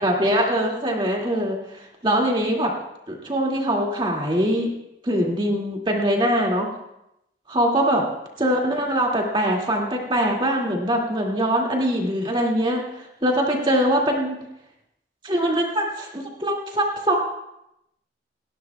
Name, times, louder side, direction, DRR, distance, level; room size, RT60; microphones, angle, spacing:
voice 1, 0.0-2.7 3.1-4.7 5.0-6.7 7.5-8.0 8.4-14.4 15.2-17.1, equal, 25° right, -1 dB, 2.2 m, -22 dB
28.5 x 11.5 x 2.3 m, 0.84 s
head